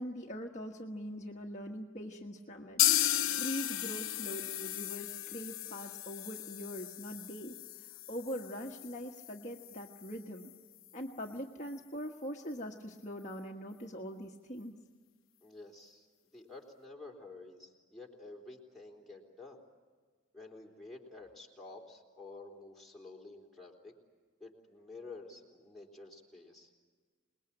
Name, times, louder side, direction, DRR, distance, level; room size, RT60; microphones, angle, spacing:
voice 1, 0.0-2.8 3.4-7.6 8.1-10.5 10.9-14.8, equal, 35° left, 0 dB, 1.4 m, -42 dB
sound 1, 2.8-10.5 10.8-10.9 11.2-11.3 11.8-11.9, left 13 dB, 90° left, 0.9 m, -35 dB
voice 2, 15.4-16.1 16.3-19.6 20.3-23.9 24.4-26.7, left 3 dB, ahead, -2 dB, 3.7 m, -50 dB
27.5 x 21.0 x 8.8 m, 1.5 s
head